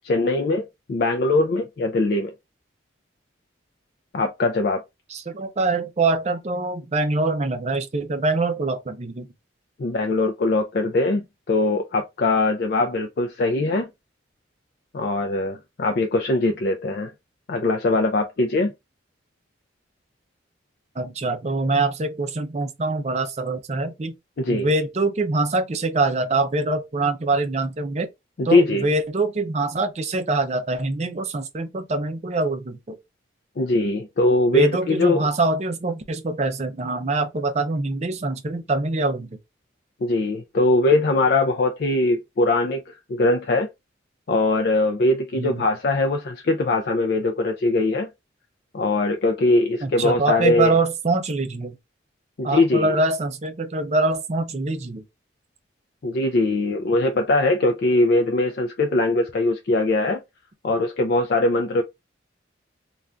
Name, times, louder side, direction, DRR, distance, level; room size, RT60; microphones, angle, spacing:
voice 1, 0.0-2.3 4.1-4.8 9.8-13.9 14.9-17.1 17.5-18.7 24.4-24.7 28.4-28.9 33.6-35.3 40.0-43.7 44.3-48.1 48.7-50.7 52.4-52.9 56.0-60.2 60.6-61.8, left 2 dB, 55° left, 0.4 m, -21 dB
voice 2, 5.1-9.3 21.0-24.1 24.5-28.1 28.4-33.0 34.5-39.3 45.3-45.6 49.8-51.8 52.4-55.0, right 3 dB, 35° right, 0.5 m, -24 dB
2.5 x 2.3 x 3.3 m
head